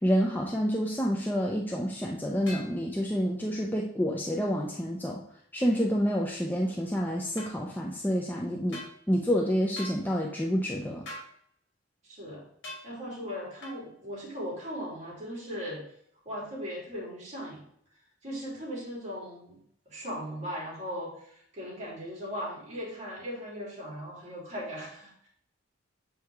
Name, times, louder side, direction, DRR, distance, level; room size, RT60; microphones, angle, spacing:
voice 1, 0.0-5.2 5.5-11.0, equal, 10° left, -1 dB, 0.6 m, -28 dB
sound 1, 2.5-2.7 7.4-7.5 8.7-8.9 9.8-10.0 11.1-11.3 12.6-12.9 13.6-13.8, left 1 dB, 65° left, 2.2 m, -41 dB
voice 2, 12.0-12.5 12.8-15.8 16.2-17.6 18.2-19.6 19.9-25.3, equal, 35° right, -5 dB, 3.0 m, -38 dB
7.6 x 4.8 x 3.5 m, 0.67 s
head